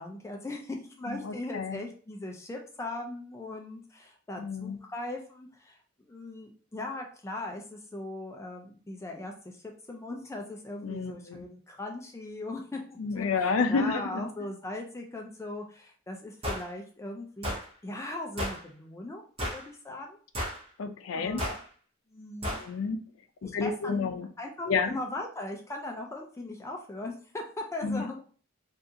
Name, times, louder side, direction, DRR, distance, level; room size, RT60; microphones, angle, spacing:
voice 1, 0.0-17.6 17.8-19.2 19.5-20.2 21.1-21.6 22.1-22.6 23.4-28.2, left 2 dB, 15° left, 1 dB, 0.4 m, -39 dB
voice 2, 1.1-1.8 4.4-4.8 10.8-11.4 13.0-14.3 20.8-21.4 22.6-23.0 23.4-24.3 24.6-24.9 27.8-28.2, left 4 dB, 80° left, 8 dB, 0.4 m, -30 dB
sound 1, 16.4-16.7 17.4-17.6 18.4-18.6 19.4-19.7 20.3-20.6 21.4-21.6 22.4-22.7, equal, 30° right, 0.8 m, -32 dB
2.7 x 2.4 x 3.6 m, 0.43 s
head